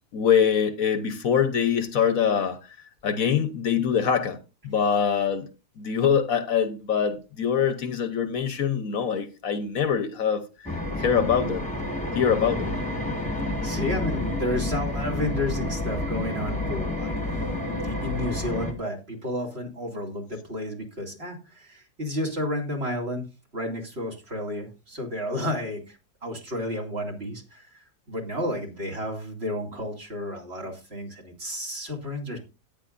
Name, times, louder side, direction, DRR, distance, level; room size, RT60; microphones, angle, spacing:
voice 1, 0.1-2.6 3.0-4.4 4.6-5.5 5.8-10.7 11.0-11.6 12.1-12.8, left 7 dB, 65° left, 1.4 m, -24 dB
sound 1, 10.7-18.7, left 1 dB, 5° left, 1.6 m, -29 dB
voice 2, 13.6-17.1 17.8-23.2 23.5-26.0 26.2-32.4, left 1 dB, 40° right, 2.8 m, -32 dB
14.0 x 9.6 x 2.5 m
omnidirectional pair, 1.7 m